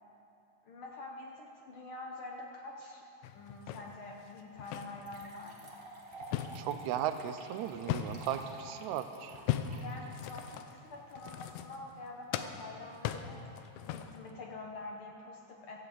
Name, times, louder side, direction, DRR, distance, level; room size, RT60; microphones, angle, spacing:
voice 1, 0.7-3.0 3.3-5.7 9.7-13.4 13.8-15.8, left 2 dB, 65° left, 0 dB, 1.3 m, -46 dB
sound 1, 3.2-5.3 5.7-8.5 9.3-12.1 12.3-14.3, left 11 dB, 85° left, 2.0 m, -39 dB
sound 2, 4.4-4.5 5.0-11.3, right 2 dB, 40° right, 0.8 m, -51 dB
voice 2, 6.6-9.4, right 10 dB, 85° right, 10 dB, 1.9 m, -36 dB
14.5 x 8.4 x 7.7 m, 2.8 s
omnidirectional pair, 3.3 m